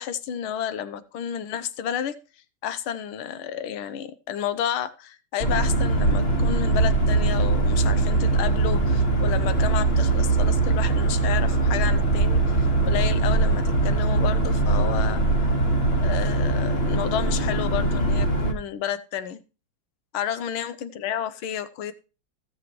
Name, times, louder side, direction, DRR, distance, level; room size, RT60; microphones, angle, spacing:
voice 1, 0.0-2.1 2.6-15.2 16.0-19.4 20.1-21.9, left 9 dB, 80° left, 13 dB, 1.7 m, -31 dB
sound 1, 5.4-18.5, right 3 dB, 30° left, 1.6 m, -21 dB
17.0 x 7.1 x 3.1 m, 0.33 s
omnidirectional pair, 2.3 m